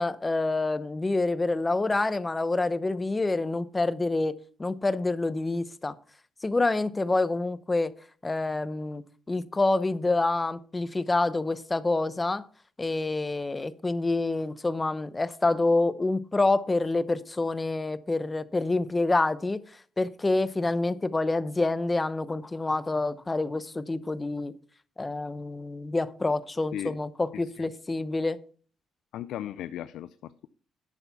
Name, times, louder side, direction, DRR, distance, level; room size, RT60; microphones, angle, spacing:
voice 1, 0.0-5.9 6.4-7.9 8.2-9.0 9.3-12.4 12.8-19.6 20.0-24.6 25.0-28.4, left 2 dB, 20° left, 0.8 m, -27 dB
voice 2, 29.1-30.5, left 11 dB, 80° left, 0.4 m, -37 dB
11.0 x 6.8 x 5.9 m
cardioid pair, 90°, 0 cm